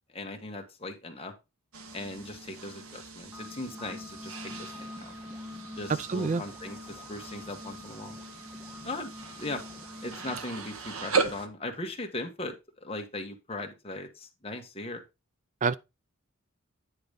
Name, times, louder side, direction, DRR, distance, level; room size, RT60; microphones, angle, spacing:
voice 1, 0.1-1.3 1.9-5.1 5.8-8.1 8.8-9.1 9.4-9.6 10.0-15.0, left 2 dB, 25° left, 1.4 m, -39 dB
sound 1, 1.7-11.5, right 4 dB, 80° right, 1.2 m, -37 dB
sound 2, 3.2-10.4, left 2 dB, 5° right, 0.8 m, -45 dB
voice 2, 5.9-6.4 15.6-15.7, right 4 dB, 35° right, 0.4 m, -27 dB
9.6 x 4.0 x 5.0 m
head